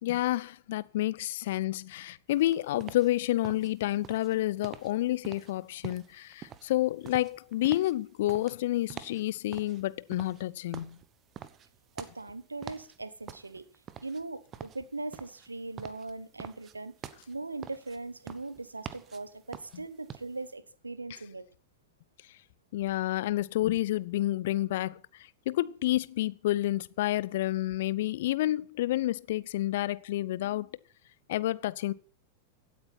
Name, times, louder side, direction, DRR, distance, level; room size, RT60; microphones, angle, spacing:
voice 1, 0.0-11.0 19.7-19.8 21.1-21.2 22.7-30.7 31.3-31.9, left 15 dB, 55° left, 0.6 m, -29 dB
sound 1, 2.3-20.5, right 9 dB, 30° right, 1.1 m, -47 dB
voice 2, 12.0-13.6 14.0-16.9 17.3-21.5, right 3 dB, 80° right, 1.1 m, -40 dB
16.5 x 8.7 x 5.9 m
figure-of-eight pair, 90°, 0 cm